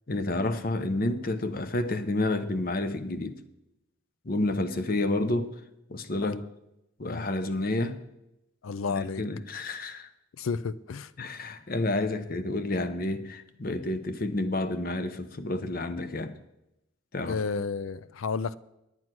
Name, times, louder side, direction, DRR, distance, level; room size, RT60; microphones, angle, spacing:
voice 1, 0.1-3.4 4.2-5.6 5.9-6.4 7.0-8.0 8.9-10.1 11.2-16.3 17.1-17.4, left 2 dB, 45° left, 0.8 m, -30 dB
voice 2, 8.6-9.2 10.4-11.1 17.3-18.5, left 5 dB, 85° left, 0.5 m, -32 dB
9.5 x 9.1 x 6.1 m
head